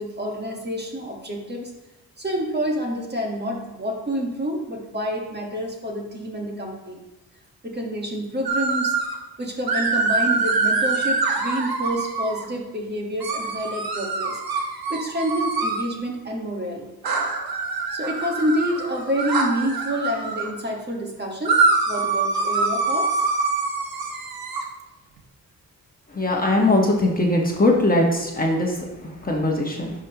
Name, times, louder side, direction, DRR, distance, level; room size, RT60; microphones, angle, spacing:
voice 1, 0.0-1.7 2.2-7.0 7.6-9.0 9.4-14.4 14.9-16.9 17.9-21.6 21.9-23.3, equal, 30° right, 0 dB, 1.5 m, -28 dB
sound 1, 8.5-9.1 9.7-12.5 13.2-15.8 17.0-20.5 21.5-24.6, right 4 dB, 80° right, 1.2 m, -24 dB
voice 2, 26.1-29.9, left 2 dB, 25° left, -1 dB, 1.3 m, -21 dB
11.0 x 5.4 x 3.0 m, 1.0 s
cardioid pair, 90°, 36 cm